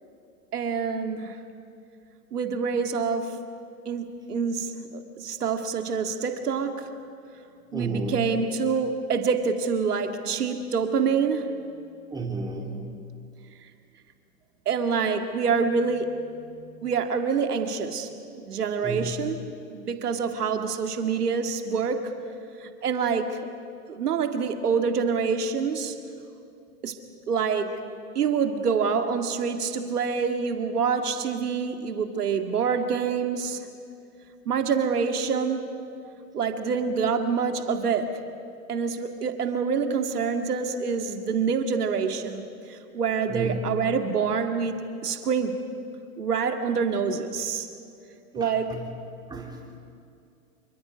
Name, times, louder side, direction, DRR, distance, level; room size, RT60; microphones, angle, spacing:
voice 1, 0.5-1.4 2.3-3.4 3.9-6.9 7.7-11.7 14.7-18.1 18.4-19.4 19.7-22.1 22.6-23.4 23.9-26.0 26.8-27.0 27.3-27.8 28.2-33.6 34.5-35.7 36.3-38.2 38.7-42.4 42.7-45.6 46.2-47.7 48.3-48.8, right 5 dB, 80° right, 5 dB, 2.1 m, -26 dB
voice 2, 7.7-8.2 12.1-13.0 18.8-19.1 36.0-36.1 43.3-43.6 48.3-48.9 49.3-49.6, right 3 dB, 10° right, -1 dB, 3.4 m, -32 dB
27.0 x 23.5 x 5.2 m, 2.5 s
hypercardioid pair, 115°, 45 cm